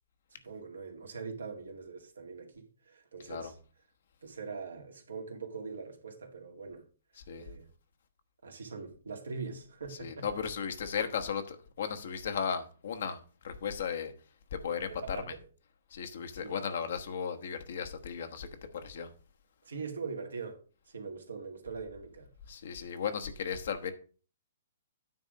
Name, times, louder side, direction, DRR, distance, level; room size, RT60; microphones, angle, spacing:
voice 1, 0.3-3.6 4.2-6.8 7.4-7.7 8.4-10.3 14.9-15.5 16.3-16.6 19.6-20.6 20.9-22.3, right 5 dB, 80° right, 2.0 m, -42 dB
voice 2, 10.0-13.2 13.4-14.1 14.5-15.2 15.9-18.5 18.8-19.1 22.5-23.9, left 7 dB, 65° left, 1.2 m, -35 dB
9.5 x 3.7 x 6.3 m
hypercardioid pair, 125°, 0 cm